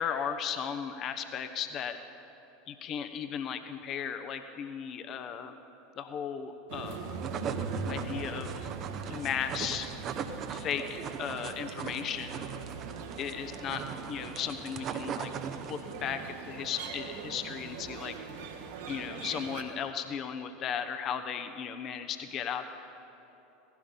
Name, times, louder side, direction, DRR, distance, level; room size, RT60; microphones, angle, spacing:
voice 1, 0.0-2.0 2.7-5.6 6.0-7.2 7.9-8.7 9.1-9.9 10.5-12.4 13.2-15.3 15.6-18.2 18.9-22.6, left 8 dB, 45° left, 8 dB, 0.9 m, -36 dB
sound 1, 6.7-19.6, right 5 dB, 70° right, 1.4 m, -41 dB
sound 2, 6.9-16.0, right 7 dB, 40° right, 0.8 m, -40 dB
17.0 x 15.5 x 5.2 m, 2.9 s
hypercardioid pair, 80°, 0 cm